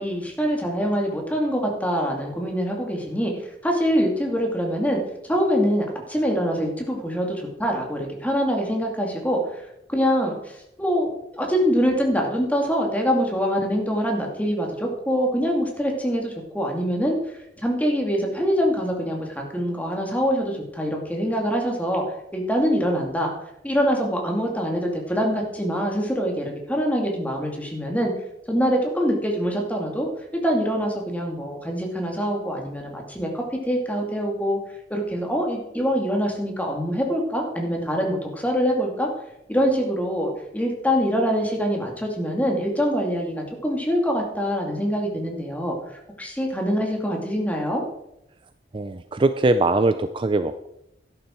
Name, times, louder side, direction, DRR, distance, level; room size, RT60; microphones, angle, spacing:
voice 1, 0.0-3.3 3.6-9.6 9.9-10.3 10.8-17.2 17.6-22.0 22.3-23.3 23.6-28.1 28.5-30.1 30.4-34.6 34.9-39.1 39.5-45.7 46.2-47.8, equal, 10° left, 1 dB, 2.4 m, -24 dB
voice 2, 48.7-50.7, right 2 dB, 30° right, 10 dB, 0.5 m, -21 dB
12.5 x 11.0 x 4.5 m, 0.82 s
head